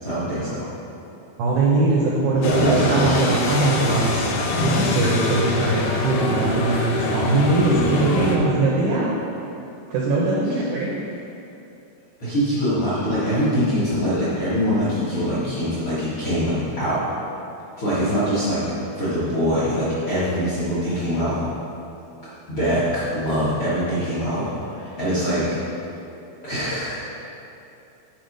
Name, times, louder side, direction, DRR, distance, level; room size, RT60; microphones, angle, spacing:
voice 1, 0.0-0.6 2.4-3.1 7.7-8.2 12.2-17.0 17.8-18.6 18.9-21.4 22.5-25.4 26.4-27.0, equal, 55° left, -11 dB, 1.4 m, -23 dB
voice 2, 1.4-4.3 4.6-9.1 9.9-10.9, right 2 dB, 85° right, -4 dB, 1.7 m, -21 dB
sound 1, 2.4-8.4, left 2 dB, 80° left, 2.7 m, -25 dB
7.8 x 4.4 x 5.2 m, 2.8 s
omnidirectional pair, 4.5 m